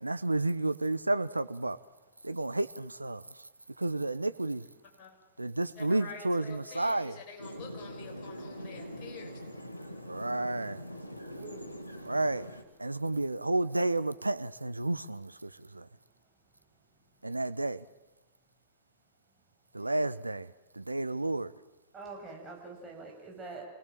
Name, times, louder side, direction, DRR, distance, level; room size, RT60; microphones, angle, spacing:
voice 1, 0.0-1.8 2.2-3.2 3.8-4.6 5.4-7.2 10.1-10.8 12.0-12.5 12.8-15.9 17.2-17.8 19.7-21.5, right 2 dB, 85° right, 0.8 m, -31 dB
voice 2, 5.8-9.4, left 5 dB, 40° left, 6.4 m, -47 dB
sound 1, 7.4-12.6, equal, 90° left, 2.3 m, -43 dB
voice 3, 11.4-11.7 21.9-23.7, right 3 dB, 20° right, 7.7 m, -45 dB
28.0 x 18.5 x 7.5 m
figure-of-eight pair, 100°, 0 cm